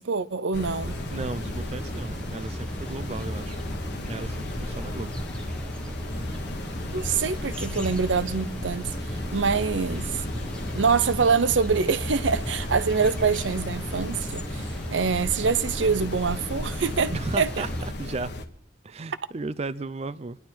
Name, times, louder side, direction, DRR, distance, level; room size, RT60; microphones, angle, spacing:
voice 1, 0.0-1.0 6.9-10.2 10.7-17.6, right 5 dB, 90° right, 0.7 m, -25 dB
sound 1, 0.5-18.4, left 1 dB, 60° left, 1.3 m, -35 dB
sound 2, 0.8-17.9, equal, 5° left, 1.0 m, -37 dB
voice 2, 1.1-3.6 4.0-5.1 17.1-18.3 18.8-20.4, right 3 dB, 35° right, 0.5 m, -34 dB
26.5 x 11.0 x 4.5 m
head